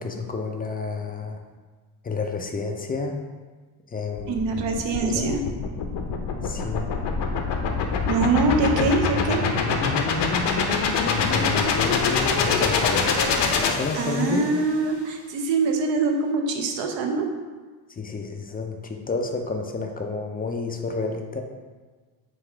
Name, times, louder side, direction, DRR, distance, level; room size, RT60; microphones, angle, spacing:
voice 1, 0.0-1.4 2.0-3.2 3.9-4.7 5.0-5.4 6.4-6.9 8.8-9.1 11.0-13.1 13.6-14.5 17.9-21.4, left 4 dB, 20° left, 3 dB, 0.4 m, -30 dB
sound 1, 4.2-14.5, left 4 dB, 60° left, 0.7 m, -24 dB
voice 2, 4.3-5.4 8.1-9.4 13.9-17.3, right 3 dB, 65° right, 4 dB, 0.7 m, -24 dB
4.1 x 2.4 x 4.3 m, 1.4 s
supercardioid pair, 75°, 48 cm